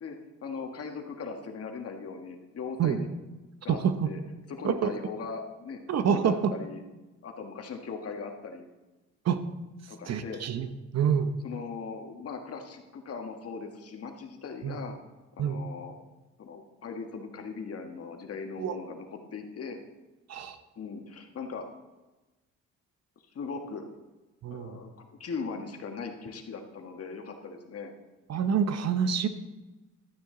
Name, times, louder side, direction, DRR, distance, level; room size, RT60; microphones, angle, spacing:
voice 1, 0.0-3.1 3.6-3.8 4.1-4.2 4.5-6.8 7.2-8.7 9.9-10.4 11.4-14.9 15.4-16.0 16.4-19.8 20.8-21.6 23.4-23.9 24.5-27.9, left 5 dB, 50° left, 4 dB, 1.6 m, -39 dB
voice 2, 3.7-4.1 4.6-4.9 5.9-6.5 9.2-9.4 10.1-10.7 10.9-11.3 14.6-14.8 15.4-15.6 18.6-18.8 20.3-20.6 24.4-24.8 28.3-29.3, right 7 dB, 60° right, 10 dB, 0.9 m, -27 dB
12.5 x 9.3 x 3.8 m, 1.1 s
cardioid pair, 90°, 30 cm